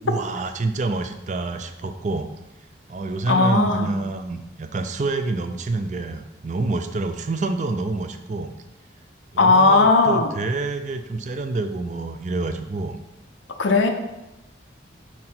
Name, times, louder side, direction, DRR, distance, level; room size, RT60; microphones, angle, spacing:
voice 1, 0.0-2.3 2.9-8.5 9.3-13.0, right 3 dB, 40° right, 8 dB, 0.4 m, -27 dB
voice 2, 3.3-3.9 9.4-10.3 13.6-13.9, left 3 dB, 85° left, 5 dB, 0.7 m, -17 dB
6.0 x 3.8 x 4.4 m, 0.97 s
head